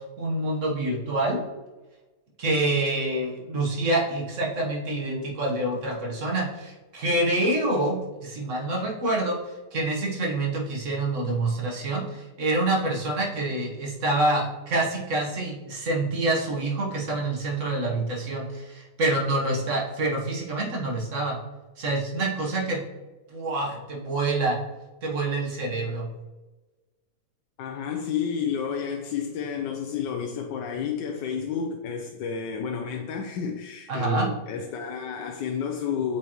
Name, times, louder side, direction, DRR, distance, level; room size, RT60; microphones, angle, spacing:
voice 1, 0.2-1.4 2.4-9.4 9.7-21.4 21.8-22.8 23.3-24.6 25.0-26.1 33.9-34.3, right 2 dB, 50° right, -1 dB, 1.5 m, -26 dB
voice 2, 27.6-36.2, left 7 dB, 85° left, 2 dB, 1.3 m, -31 dB
8.1 x 4.9 x 3.0 m, 1.2 s
omnidirectional pair, 1.9 m